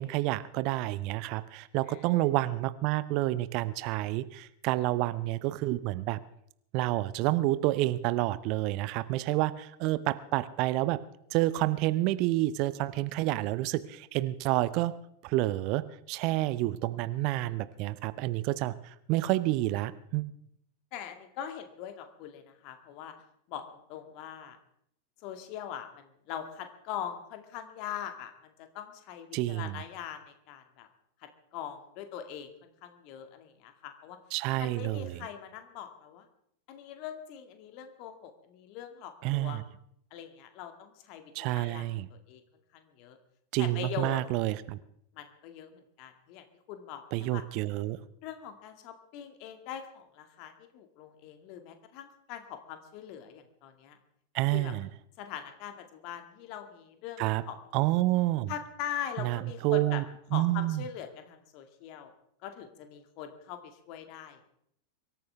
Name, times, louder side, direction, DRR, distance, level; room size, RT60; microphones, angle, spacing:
voice 1, 0.0-6.2 6.7-11.0 11.3-14.9 15.2-20.3 29.3-29.8 34.3-35.1 39.2-39.6 41.3-42.1 43.5-44.8 47.1-48.0 54.3-54.9 57.2-57.4 57.7-58.5 59.2-60.0 60.3-60.8, right 17 dB, 45° right, 16 dB, 0.6 m, -29 dB
voice 2, 16.3-16.6 20.9-23.1 23.5-24.6 25.2-30.9 31.2-34.2 34.6-36.3 36.7-39.6 40.1-42.4 42.7-43.2 43.6-44.2 45.1-47.4 48.2-54.0 54.5-54.7 55.2-57.6 58.5-60.0 60.3-62.1 62.4-64.4, left 9 dB, 45° left, 7 dB, 2.1 m, -42 dB
23.5 x 13.5 x 3.5 m, 0.71 s
figure-of-eight pair, 90°, 0 cm